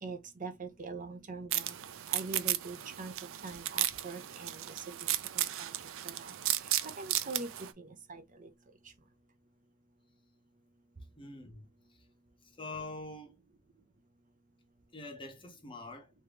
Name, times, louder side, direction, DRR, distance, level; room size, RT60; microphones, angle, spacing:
voice 1, 0.0-1.8 2.1-5.7 6.0-8.5 8.8-8.9, right 3 dB, 40° right, 0.8 m, -44 dB
sound 1, 1.5-7.7, right 13 dB, 65° right, 0.5 m, -35 dB
voice 2, 11.2-11.7 12.6-13.4 14.9-16.1, left 2 dB, 25° left, 0.8 m, -44 dB
3.6 x 3.2 x 3.3 m
head